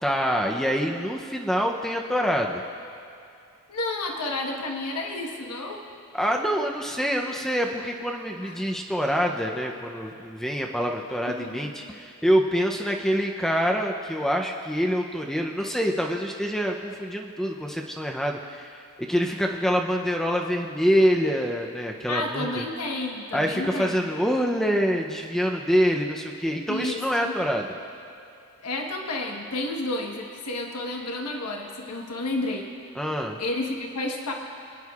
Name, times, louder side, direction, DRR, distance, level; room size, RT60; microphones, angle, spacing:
voice 1, 0.0-2.6 6.1-22.7 23.3-27.7 33.0-33.4, equal, ahead, 1 dB, 0.5 m, -26 dB
voice 2, 3.7-5.9 8.4-8.7 11.3-11.7 22.1-24.1 26.7-27.3 28.6-32.7 33.4-34.3, left 2 dB, 90° left, 1 dB, 1.2 m, -31 dB
25.5 x 9.9 x 2.4 m, 2.5 s
head